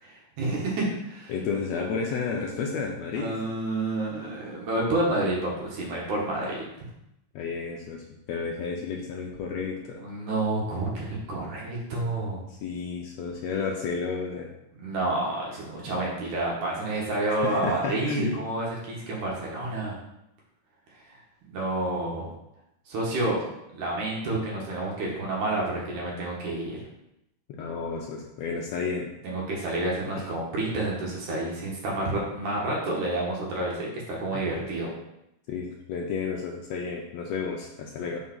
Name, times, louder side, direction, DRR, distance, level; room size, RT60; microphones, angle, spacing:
voice 1, 0.0-1.3 3.1-6.6 10.0-12.4 14.7-20.0 21.1-21.2 21.5-22.3 22.9-23.4 23.7-26.8 29.2-34.9, right 2 dB, 70° right, -4 dB, 2.7 m, -29 dB
voice 2, 1.3-3.3 7.3-10.0 12.5-14.5 17.3-18.3 27.5-29.1 30.2-30.3 34.3-34.4 35.5-38.2, left 5 dB, 80° left, 0 dB, 1.6 m, -32 dB
5.3 x 4.7 x 5.7 m, 0.86 s
omnidirectional pair, 3.7 m